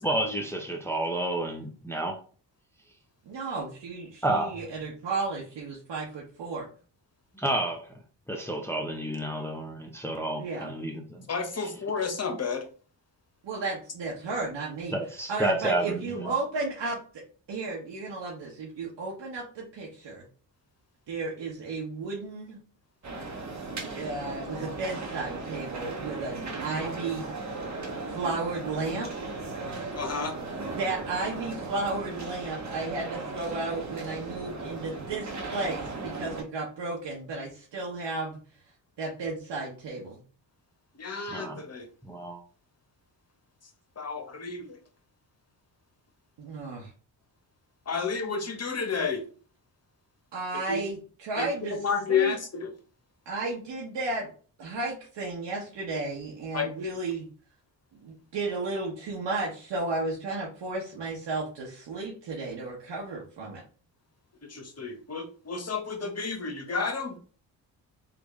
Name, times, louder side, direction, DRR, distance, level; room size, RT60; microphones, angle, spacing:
voice 1, 0.0-2.2 4.2-4.6 7.4-7.8 8.3-11.3 11.6-11.7 14.9-16.3 41.3-41.6 42.0-42.4, right 1 dB, 5° left, 0.7 m, -30 dB
voice 2, 3.3-6.6 10.4-10.8 13.4-14.9 15.3-17.2 17.5-20.3 21.1-22.6 23.4-23.6 23.9-27.3 28.1-29.3 30.7-38.4 39.0-40.2 46.4-46.9 50.3-51.8 52.1-52.4 53.3-54.3 54.6-57.3 58.0-63.6, right 3 dB, 60° right, 1.1 m, -33 dB
voice 3, 11.3-12.6 29.9-30.3 41.0-41.9 44.0-44.8 47.9-49.2 50.7-50.8 51.4-52.7 56.5-56.7 64.5-67.2, left 5 dB, 30° left, 1.0 m, -31 dB
sound 1, 23.0-36.4, right 3 dB, 35° right, 1.1 m, -37 dB
3.4 x 2.4 x 3.1 m
supercardioid pair, 50°, 48 cm